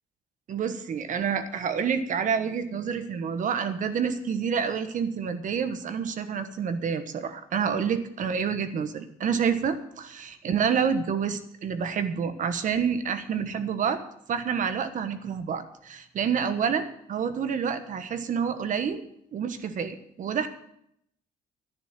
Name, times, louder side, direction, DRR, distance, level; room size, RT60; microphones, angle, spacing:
voice 1, 0.5-14.0 14.3-19.0 19.3-20.5, right 7 dB, 50° right, 10 dB, 1.2 m, -28 dB
11.0 x 9.7 x 7.4 m, 0.75 s
cardioid pair, 110°, 17 cm